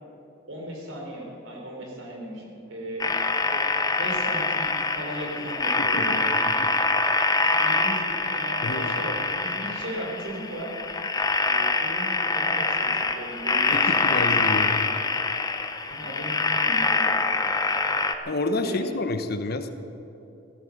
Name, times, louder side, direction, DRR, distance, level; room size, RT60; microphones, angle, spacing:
voice 1, 0.5-3.1 3.5-3.7 3.9-6.3 7.5-10.7 11.4-14.6 15.9-17.3 18.6-18.9, equal, 75° right, 0 dB, 4.1 m, -36 dB
sound 1, 3.0-18.1, left 3 dB, 20° left, 0.7 m, -25 dB
voice 2, 5.8-6.2 6.6-6.7 8.6-9.0 13.7-14.9 18.3-19.7, left 2 dB, 55° left, 8 dB, 1.0 m, -29 dB
16.5 x 13.0 x 6.5 m, 2.9 s
head